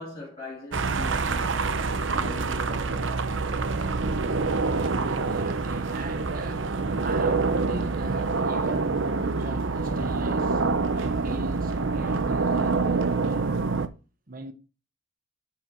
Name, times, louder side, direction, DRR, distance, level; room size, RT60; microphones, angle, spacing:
voice 1, 0.0-1.5 2.1-3.2, left 2 dB, 25° left, 3.4 m, -41 dB
sound 1, 0.7-13.9, right 4 dB, 70° right, 0.8 m, -26 dB
voice 2, 4.2-13.7 14.3-14.5, right 2 dB, 45° right, 1.2 m, -39 dB
9.7 x 4.9 x 4.5 m
head